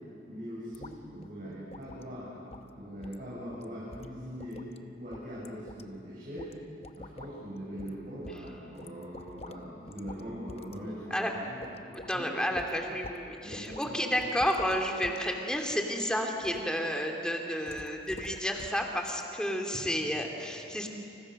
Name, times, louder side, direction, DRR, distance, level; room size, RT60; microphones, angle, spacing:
voice 1, 0.3-4.6 5.0-6.5 7.0-11.6 12.1-12.3 13.4-14.1, equal, 50° right, -7 dB, 7.3 m, -41 dB
sound 1, 0.7-1.0 1.2-1.3 1.7-2.1 2.5-2.7 3.0-3.2 3.5-3.6 3.9-4.8 5.1-5.8 6.4-6.5 6.8-7.3 7.8-8.0 8.2-9.6 9.9-10.2 10.5-10.8 11.1-11.2 11.6-12.2 12.6-13.2 13.5-13.8 14.2-15.2 15.5-15.8 16.4-16.7 17.7-18.8 19.1-19.2, left 2 dB, 35° left, 0.9 m, -46 dB
voice 2, 11.9-20.9, equal, 5° left, 2 dB, 2.6 m, -31 dB
29.5 x 29.0 x 6.6 m, 2.8 s
head